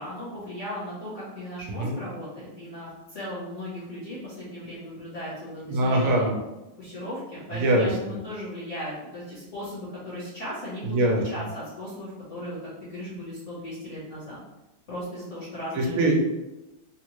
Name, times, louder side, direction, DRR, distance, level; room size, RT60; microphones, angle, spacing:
voice 1, 0.0-6.3 6.8-11.0 11.3-14.4 14.9-16.1, left 1 dB, 45° left, -8 dB, 1.1 m, -37 dB
voice 2, 1.7-2.0 5.7-6.4 7.5-8.2 10.8-11.2 15.7-16.3, right 1 dB, 80° right, 0 dB, 1.5 m, -23 dB
3.9 x 2.1 x 3.0 m, 0.99 s
omnidirectional pair, 2.3 m